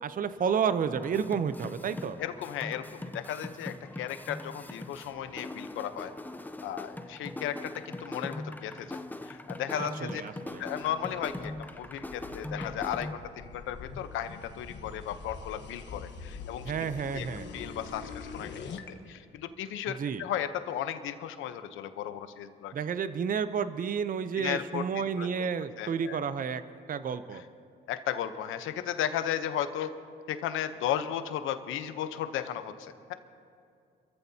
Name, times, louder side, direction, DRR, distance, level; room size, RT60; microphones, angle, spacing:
voice 1, 0.0-2.2 9.8-10.6 16.6-17.5 20.0-20.2 22.7-26.6 26.9-27.4, right 6 dB, 45° right, 12 dB, 0.7 m, -31 dB
sound 1, 0.9-13.1, left 1 dB, 10° left, 0.6 m, -41 dB
voice 2, 2.2-6.1 6.6-10.2 10.6-16.7 17.1-17.3 17.5-18.5 19.1-22.7 24.4-25.5 25.8-26.2 27.3-27.4 27.9-29.9 30.3-33.1, left 10 dB, 90° left, 10 dB, 0.9 m, -35 dB
sound 2, 10.9-18.9, left 5 dB, 65° left, 1.3 m, -44 dB
28.5 x 14.5 x 2.8 m, 2.4 s
cardioid pair, 90°, 20 cm